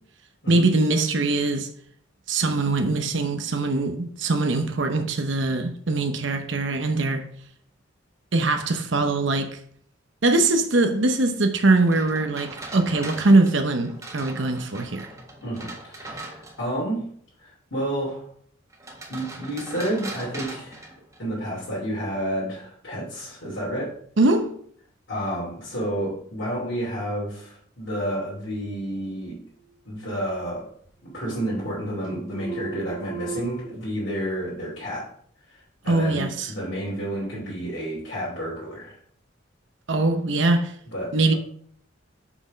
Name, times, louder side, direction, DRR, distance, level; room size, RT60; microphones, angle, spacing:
voice 1, 0.5-1.7 2.3-7.2 8.3-9.6 10.2-15.1 24.2-24.5 35.9-36.5 39.9-40.7 41.1-41.3, right 2 dB, 65° right, 0.8 m, -22 dB
sound 1, 11.8-16.8 18.7-21.5, right 2 dB, 15° right, 1.5 m, -40 dB
voice 2, 15.4-17.0 17.4-18.2 19.1-20.9 21.2-23.9 25.1-29.4 29.8-30.7 31.0-35.1 35.5-38.9 40.9-41.3, equal, 65° left, 2.9 m, -30 dB
sound 2, 29.6-30.5 30.8-31.8 32.0-33.7, right 4 dB, 30° left, 2.5 m, -38 dB
6.2 x 6.0 x 5.1 m
head